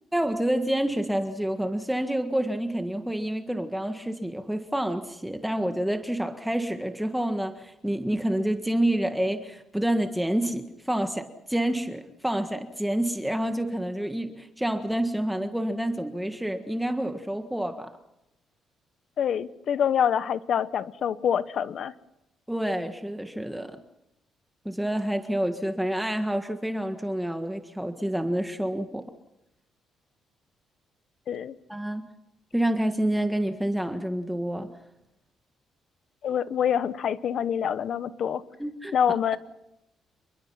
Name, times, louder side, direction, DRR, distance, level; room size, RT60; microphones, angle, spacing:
voice 1, 0.1-17.9 22.5-23.8 24.6-29.0 31.7-32.0 32.5-34.7 38.6-38.9, right 1 dB, 5° right, 1.6 m, -28 dB
voice 2, 19.2-21.9 31.3-31.6 36.2-38.4 38.9-39.4, left 8 dB, 65° left, 1.1 m, -26 dB
28.0 x 22.5 x 5.8 m
cardioid pair, 90°, 0 cm